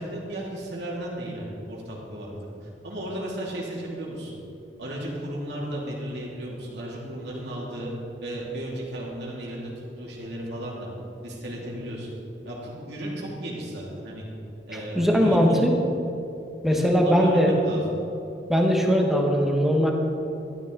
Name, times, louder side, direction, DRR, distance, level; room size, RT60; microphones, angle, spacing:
voice 1, 0.0-4.4 4.8-7.9 8.2-9.7 10.0-10.9 11.2-12.1 12.4-14.2 14.7-15.6 16.7-17.9, right 1 dB, 65° right, -4 dB, 2.8 m, -34 dB
voice 2, 14.7-15.7 16.6-17.5 18.5-19.9, equal, ahead, 0 dB, 1.3 m, -20 dB
12.5 x 12.5 x 4.0 m, 2.8 s
head